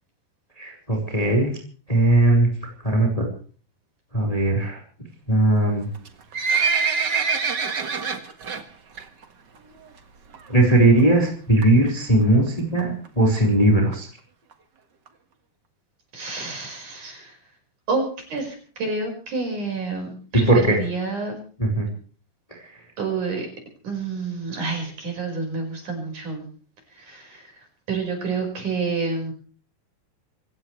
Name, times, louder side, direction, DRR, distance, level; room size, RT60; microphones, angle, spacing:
voice 1, 0.6-1.5 1.9-2.5 2.8-3.3 4.1-4.8 5.3-5.9 10.5-14.1 20.5-20.8 21.6-21.9 22.5-22.8, right 1 dB, 10° left, 1 dB, 4.2 m, -19 dB
Livestock farm animals working animals, 5.9-8.6 9.0-9.2 9.6-9.7 10.3-10.4 10.7-10.8 11.0-11.1 11.6-11.9 12.5-12.6 12.8-12.9 13.0-13.1 13.4-13.5 13.9-14.0 14.5-14.6 15.1-15.2, right 5 dB, 85° right, 0.9 m, -24 dB
voice 2, 16.1-17.4 17.9-18.0 18.3-21.4 23.0-23.5 23.8-26.4 26.9-27.5 27.9-29.3, right 4 dB, 45° right, 3 dB, 6.5 m, -29 dB
27.0 x 16.0 x 3.3 m, 0.42 s
omnidirectional pair, 5.0 m